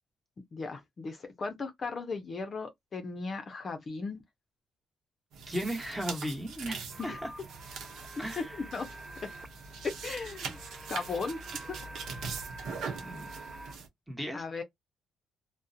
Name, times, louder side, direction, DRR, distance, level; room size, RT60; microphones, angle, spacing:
voice 1, 0.5-4.2 7.0-7.2 8.4-9.3 10.0-10.6 10.9-11.4 11.7-11.8 14.3-14.6, left 4 dB, 40° left, 0.5 m, -37 dB
sound 1, 5.3-13.9, right 5 dB, 75° right, 0.7 m, -42 dB
voice 2, 5.5-7.3 8.2-8.5 13.0-13.3 14.1-14.4, equal, 5° right, 1.1 m, -36 dB
sound 2, 6.9-13.7, right 2 dB, 20° right, 0.4 m, -47 dB
2.3 x 2.0 x 2.6 m
cardioid pair, 90°, 0 cm